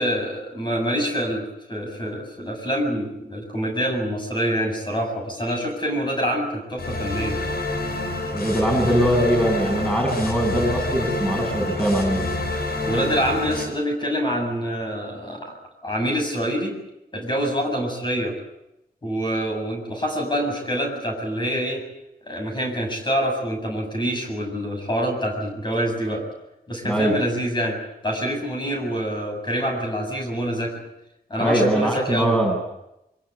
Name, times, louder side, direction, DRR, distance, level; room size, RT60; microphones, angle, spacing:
voice 1, 0.0-7.4 12.8-15.5 15.8-16.8 17.1-18.4 19.0-21.8 22.3-26.2 26.7-27.8 28.0-30.7 31.3-32.4, equal, 30° left, 2 dB, 7.4 m, -26 dB
sound 1, 6.8-13.6, left 2 dB, 75° left, 6.7 m, -27 dB
voice 2, 8.3-12.2 26.8-27.2 31.4-32.6, right 1 dB, 5° left, 1 dB, 6.8 m, -21 dB
24.5 x 22.5 x 8.1 m, 0.86 s
wide cardioid pair, 145°, 16 cm